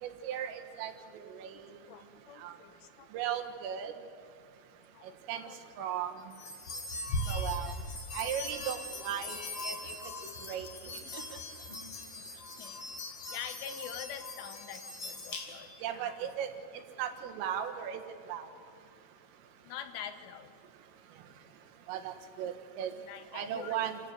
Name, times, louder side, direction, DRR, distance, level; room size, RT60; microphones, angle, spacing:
voice 1, 0.0-1.8 2.4-2.6 3.1-3.9 5.0-6.3 7.3-7.8 8.1-10.1 10.4-11.4 15.8-18.0 18.3-18.5 21.9-22.9 23.3-24.0, right 9 dB, 85° right, 6 dB, 4.2 m, -37 dB
voice 2, 1.5-3.1 4.9-5.6 6.7-6.8 12.1-12.9 13.3-16.2 19.6-20.6 23.0-23.8, left 9 dB, 75° left, 9 dB, 3.6 m, -46 dB
sound 1, 6.3-15.8, left 1 dB, 60° left, 1.4 m, -40 dB
28.0 x 14.5 x 9.1 m, 2.2 s
omnidirectional pair, 5.8 m